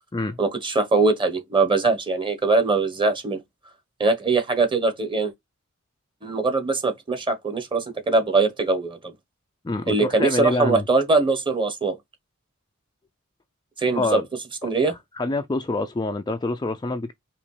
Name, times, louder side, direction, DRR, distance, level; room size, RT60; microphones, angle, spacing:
voice 1, 0.4-3.4 4.0-5.3 6.2-9.1 9.9-12.0 13.8-14.2 14.6-14.9, right 3 dB, 25° right, 1.1 m, -22 dB
voice 2, 9.6-10.9 13.9-14.3 15.1-17.1, left 2 dB, 20° left, 0.4 m, -26 dB
5.1 x 3.0 x 3.2 m
head